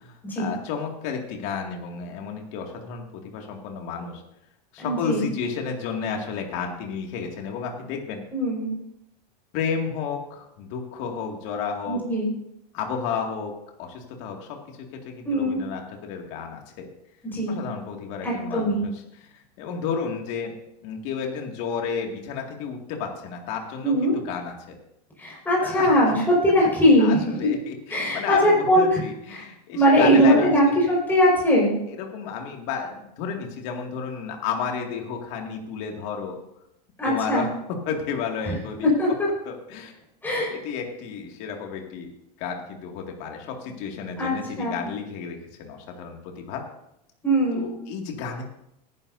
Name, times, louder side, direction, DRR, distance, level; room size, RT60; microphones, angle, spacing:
voice 1, 0.0-4.2 4.7-8.2 9.5-12.0 12.7-13.5 13.8-16.9 17.5-20.5 20.8-24.8 25.6-26.1 27.0-30.5 31.9-36.4 37.0-38.9 39.4-39.9 40.5-42.1 42.4-46.6 47.5-48.4, left 6 dB, 55° left, 2 dB, 2.3 m, -32 dB
voice 2, 4.8-5.2 8.3-8.7 11.9-12.3 15.3-15.6 17.3-17.6 18.2-18.8 23.8-24.2 25.2-27.5 27.9-29.0 29.3-29.4 29.7-31.7 37.0-37.5 38.5-38.6 38.8-39.3 40.2-40.5 44.2-44.3 44.6-44.8 47.2-47.7, equal, 10° left, -5 dB, 5.2 m, -20 dB
18.5 x 11.0 x 2.7 m, 0.80 s
supercardioid pair, 140°, 21 cm